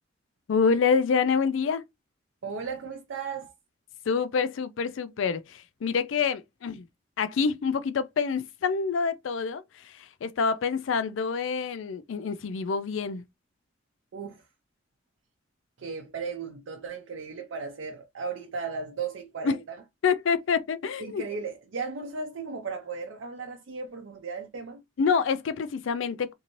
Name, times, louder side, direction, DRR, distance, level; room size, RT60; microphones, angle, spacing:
voice 1, 0.5-1.8 4.1-6.8 7.2-13.2 19.4-19.6 20.0-21.2 25.0-26.3, left 5 dB, 75° left, 0.4 m, -27 dB
voice 2, 2.4-3.5 14.1-14.4 15.8-19.8 21.0-24.8, right 5 dB, 75° right, 0.5 m, -36 dB
2.6 x 2.6 x 2.9 m
head